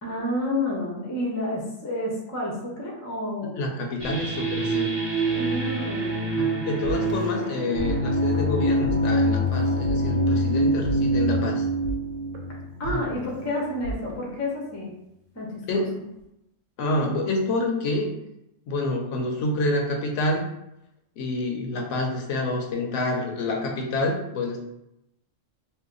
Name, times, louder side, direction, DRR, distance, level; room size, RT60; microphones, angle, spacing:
voice 1, 0.0-3.7 5.3-6.3 12.8-14.9 15.3-15.8, left 1 dB, 25° left, -2 dB, 0.4 m, -30 dB
voice 2, 3.6-4.9 6.3-11.7 12.8-13.1 15.7-15.9 16.8-18.1 18.7-20.4 21.2-24.6, left 2 dB, 70° left, 1 dB, 0.9 m, -27 dB
sound 1, 4.0-13.4, right 1 dB, 25° right, 0.6 m, -25 dB
sound 2, 6.8-7.9 8.2-8.4 8.8-8.9 9.5-10.5 10.8-14.8, right 2 dB, 70° right, 0.9 m, -36 dB
2.6 x 2.1 x 3.7 m, 0.84 s
omnidirectional pair, 1.4 m